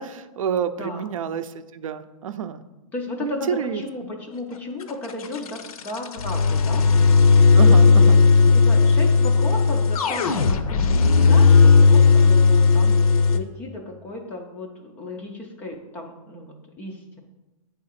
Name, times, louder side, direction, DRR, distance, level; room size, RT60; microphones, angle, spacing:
voice 1, 0.0-2.6 3.2-3.8 7.5-8.2, right 8 dB, 60° right, 11 dB, 0.5 m, -28 dB
voice 2, 0.8-1.1 2.9-6.9 7.6-17.2, left 2 dB, 10° left, 2 dB, 0.4 m, -34 dB
sound 1, 4.8-13.4, left 4 dB, 70° left, 0.8 m, -15 dB
8.7 x 3.6 x 5.7 m, 1.1 s
hypercardioid pair, 165°, 19 cm